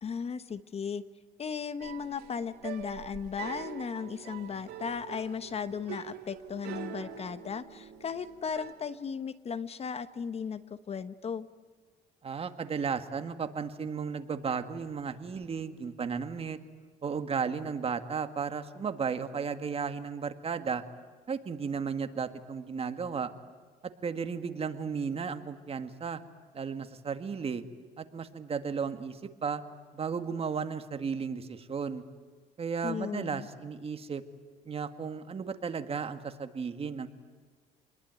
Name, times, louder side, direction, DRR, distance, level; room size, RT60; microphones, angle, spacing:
voice 1, 0.0-1.0 1.4-11.5 32.8-33.5, left 6 dB, 35° left, 13 dB, 1.1 m, -36 dB
sound 1, 1.8-8.7, right 10 dB, 80° right, 3.3 m, -44 dB
voice 2, 12.2-16.6 17.0-20.8 21.3-23.3 24.0-26.2 26.5-27.6 28.0-29.6 29.9-32.0 32.6-34.2 34.7-37.1, right 6 dB, 35° right, 9 dB, 1.9 m, -34 dB
28.0 x 21.5 x 9.6 m, 1.5 s
cardioid pair, 110°, 17 cm